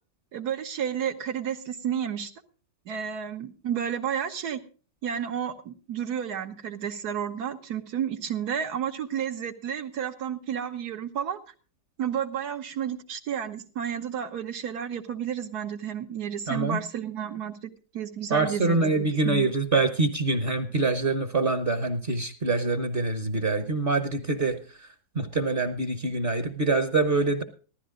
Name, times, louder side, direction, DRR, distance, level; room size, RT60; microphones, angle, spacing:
voice 1, 0.3-2.3 2.9-4.6 5.0-11.5 12.0-19.5, right 8 dB, 75° right, 8 dB, 1.6 m, -31 dB
voice 2, 16.5-16.8 18.3-24.9 25.1-27.4, right 3 dB, 40° right, 8 dB, 1.1 m, -25 dB
15.5 x 13.0 x 3.8 m, 0.38 s
omnidirectional pair, 1.7 m